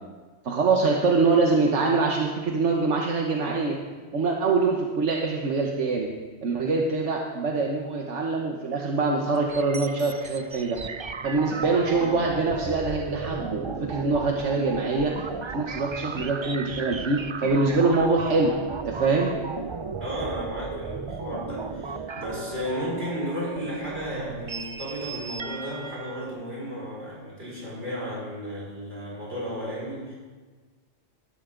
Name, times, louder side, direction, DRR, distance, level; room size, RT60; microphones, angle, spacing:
voice 1, 0.4-3.8 4.1-6.1 6.4-10.8 11.2-15.1 15.5-18.5 18.8-19.3, right 3 dB, 85° right, 0 dB, 1.5 m, -24 dB
sound 1, 9.4-26.3, right 4 dB, 35° right, 0.4 m, -35 dB
voice 2, 20.0-30.1, equal, 60° right, -6 dB, 5.9 m, -33 dB
19.0 x 13.0 x 3.9 m, 1.4 s
omnidirectional pair, 1.2 m